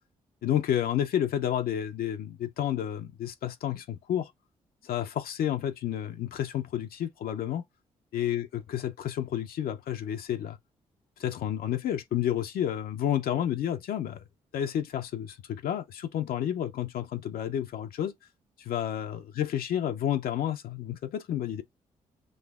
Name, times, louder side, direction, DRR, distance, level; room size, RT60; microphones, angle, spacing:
voice 1, 0.4-4.3 4.8-7.6 8.1-10.6 11.2-14.2 14.5-18.1 18.6-21.6, left 10 dB, 65° left, 0.5 m, -30 dB
6.3 x 2.6 x 2.3 m
hypercardioid pair, 45°, 17 cm